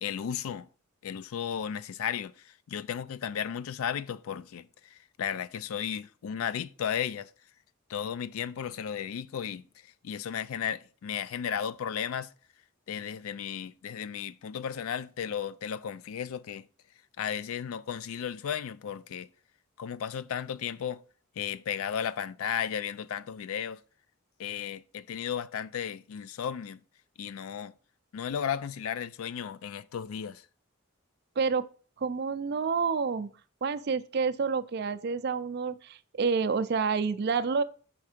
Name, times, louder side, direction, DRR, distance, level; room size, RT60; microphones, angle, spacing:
voice 1, 0.0-0.7 1.0-7.3 7.9-12.3 12.9-16.7 17.2-19.3 19.8-21.0 21.4-23.8 24.4-26.8 27.2-27.7 28.1-30.4, left 8 dB, 80° left, 0.4 m, -34 dB
voice 2, 32.0-33.3 33.6-37.6, right 5 dB, 50° right, 0.4 m, -28 dB
5.7 x 3.6 x 5.0 m
head